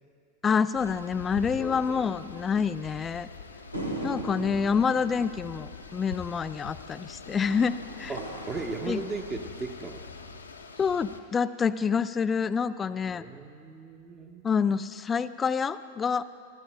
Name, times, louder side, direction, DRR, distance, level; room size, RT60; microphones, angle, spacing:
voice 1, 0.4-3.3 4.0-8.1 8.9-9.0 10.8-13.3 14.4-16.2, left 6 dB, 20° left, 14 dB, 0.3 m, -27 dB
sound 1, 0.7-11.2, left 4 dB, 75° left, 0.8 m, -44 dB
voice 2, 1.6-2.1 8.1-10.0 13.1-14.5, right 3 dB, 20° right, 4 dB, 1.1 m, -37 dB
sound 2, 3.7-10.2, right 1 dB, 90° right, 1.5 m, -40 dB
24.0 x 15.0 x 2.2 m, 2.4 s
figure-of-eight pair, 90°, 0 cm